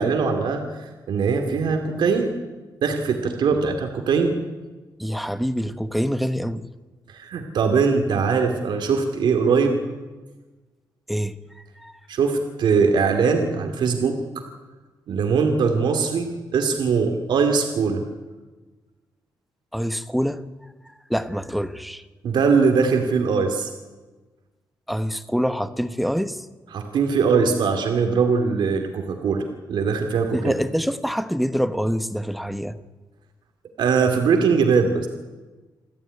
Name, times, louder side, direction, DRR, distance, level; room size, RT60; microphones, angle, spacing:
voice 1, 0.0-2.4 2.8-4.4 7.1-9.8 12.1-14.4 15.1-18.0 22.2-23.7 26.7-30.5 33.8-35.1, right 5 dB, 75° right, 5 dB, 2.5 m, -21 dB
voice 2, 5.0-6.6 11.1-11.4 11.8-11.9 19.7-20.4 21.1-22.0 24.9-26.5 30.3-32.8, equal, ahead, 12 dB, 1.0 m, -25 dB
28.0 x 13.0 x 9.5 m, 1.3 s
wide cardioid pair, 130°, 8 cm